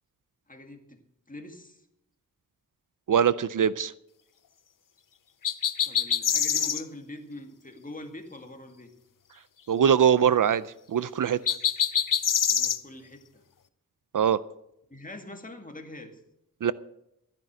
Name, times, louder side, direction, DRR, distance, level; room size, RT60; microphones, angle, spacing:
voice 1, 0.5-1.0 1.3-1.9 5.8-8.9 12.5-13.4 14.9-16.2, left 1 dB, 25° left, 3 dB, 2.2 m, -43 dB
voice 2, 3.1-3.9 9.7-10.6 10.9-11.4 14.1-14.4 16.6-16.7, right 8 dB, 65° right, 17 dB, 0.5 m, -22 dB
sound 1, 5.4-6.8 11.5-12.8, left 8 dB, 70° left, 0.7 m, -25 dB
13.5 x 10.5 x 6.2 m, 0.82 s
wide cardioid pair, 90°, 34 cm